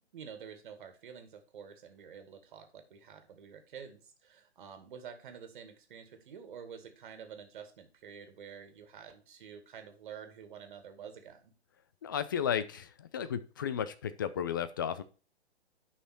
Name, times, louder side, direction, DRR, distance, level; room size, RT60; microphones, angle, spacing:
voice 1, 0.1-11.5, right 7 dB, 45° right, 7 dB, 2.2 m, -49 dB
voice 2, 12.0-15.0, left 8 dB, 20° left, 13 dB, 0.4 m, -34 dB
9.5 x 5.8 x 4.4 m, 0.36 s
figure-of-eight pair, 140°, 33 cm